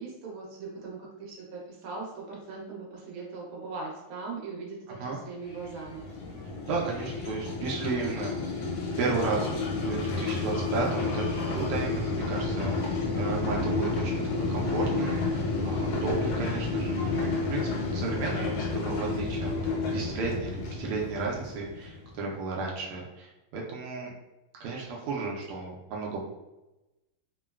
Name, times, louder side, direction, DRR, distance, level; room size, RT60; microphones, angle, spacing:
voice 1, 0.0-6.1, right 4 dB, 70° right, -3 dB, 1.6 m, -40 dB
sound 1, 5.5-22.1, left 3 dB, 85° left, 1.5 m, -31 dB
voice 2, 6.7-24.1 24.6-26.2, right 4 dB, 90° right, -2 dB, 1.5 m, -34 dB
3.7 x 2.1 x 2.2 m, 1.0 s
omnidirectional pair, 2.4 m